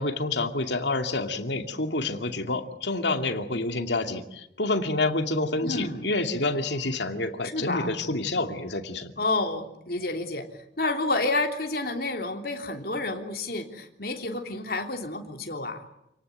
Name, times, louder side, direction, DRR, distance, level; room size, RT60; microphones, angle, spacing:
voice 1, 0.0-9.1, left 2 dB, 75° left, 6 dB, 2.5 m, -28 dB
voice 2, 5.6-6.1 7.4-7.9 9.2-10.5 10.8-15.8, left 2 dB, 55° left, 4 dB, 3.3 m, -29 dB
28.5 x 18.5 x 9.4 m, 0.82 s
head